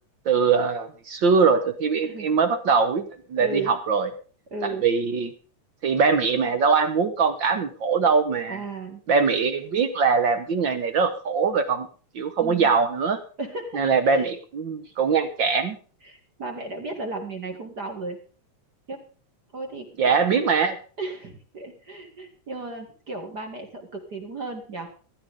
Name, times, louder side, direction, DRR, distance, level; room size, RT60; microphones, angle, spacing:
voice 1, 0.2-3.0 3.3-4.1 4.6-5.3 5.8-8.6 9.1-11.9 12.1-13.2 13.7-15.8 20.0-20.8, right 5 dB, 60° right, 10 dB, 1.2 m, -22 dB
voice 2, 3.4-3.8 4.5-4.9 8.5-9.0 12.4-12.7 13.4-14.3 14.8-14.9 16.0-18.2 18.9-19.1 19.5-20.1 21.0-24.9, right 3 dB, 35° right, 3 dB, 2.4 m, -35 dB
15.5 x 12.5 x 3.6 m, 0.39 s
omnidirectional pair, 3.5 m